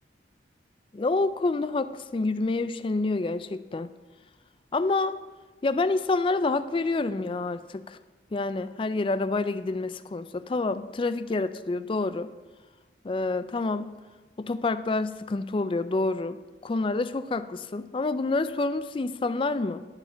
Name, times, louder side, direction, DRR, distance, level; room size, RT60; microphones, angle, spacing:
voice 1, 0.9-3.9 4.7-5.2 5.6-8.0 8.3-12.3 13.0-13.9 14.4-19.9, left 3 dB, 30° left, 13 dB, 0.3 m, -28 dB
11.0 x 5.7 x 5.7 m, 1.2 s
head